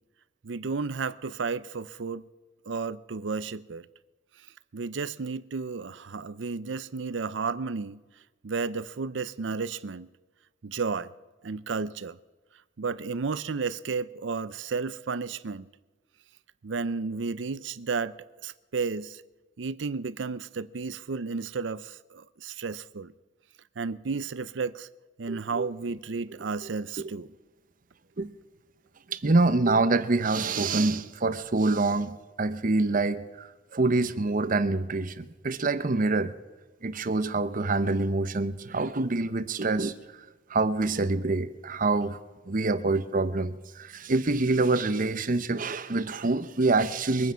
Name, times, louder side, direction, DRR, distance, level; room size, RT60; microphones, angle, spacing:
voice 1, 0.4-2.3 2.6-3.9 4.7-8.0 8.4-10.1 10.6-11.1 11.4-12.2 12.8-15.7 16.6-19.2 19.6-23.1 23.8-24.9 25.2-27.3, right 4 dB, 75° right, 0.6 m, -32 dB
voice 2, 25.3-25.7 27.0-27.1 28.2-28.3 29.1-33.5 33.7-36.3 36.8-39.9 40.5-42.2 42.5-47.3, right 3 dB, 45° right, 0.8 m, -26 dB
23.0 x 9.4 x 5.7 m
head